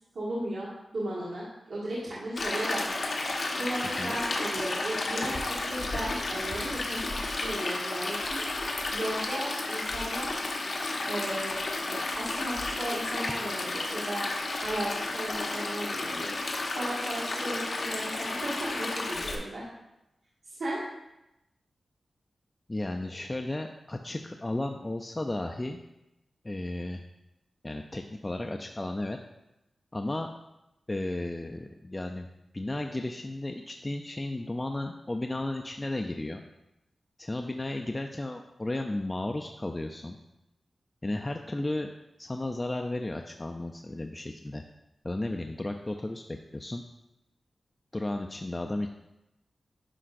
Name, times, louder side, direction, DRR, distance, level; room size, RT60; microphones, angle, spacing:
voice 1, 0.1-10.5 11.1-11.5 11.8-14.3 14.6-19.6 20.4-20.8, right 1 dB, 90° right, -9 dB, 1.7 m, -36 dB
Stream, 2.4-19.4, left 2 dB, 60° left, 1.0 m, -32 dB
voice 2, 22.7-25.8 26.4-27.0 27.6-29.2 29.9-30.3 30.9-32.3 32.5-36.4 37.2-40.2 41.0-41.9 42.2-44.6 45.0-46.8 47.9-48.9, left 2 dB, 20° left, 4 dB, 0.4 m, -34 dB
9.8 x 5.5 x 2.5 m, 0.92 s
wide cardioid pair, 100°, 0 cm